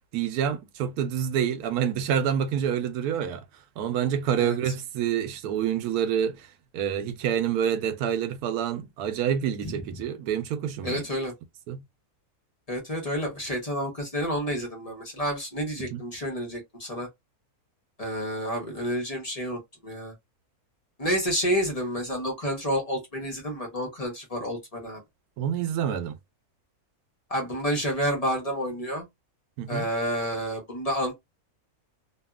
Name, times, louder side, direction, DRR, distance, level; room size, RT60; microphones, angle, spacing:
voice 1, 0.1-3.4 3.8-6.5 6.7-11.0 11.7-11.8 15.8-16.0 25.4-26.2 29.6-29.9, right 9 dB, 85° right, 1.1 m, -27 dB
voice 2, 4.4-4.7 9.6-9.7 10.8-11.3 12.7-17.1 18.0-20.1 21.0-25.0 27.3-29.0 29.7-31.1, equal, 30° left, 0.9 m, -29 dB
2.8 x 2.6 x 2.3 m
omnidirectional pair, 1.6 m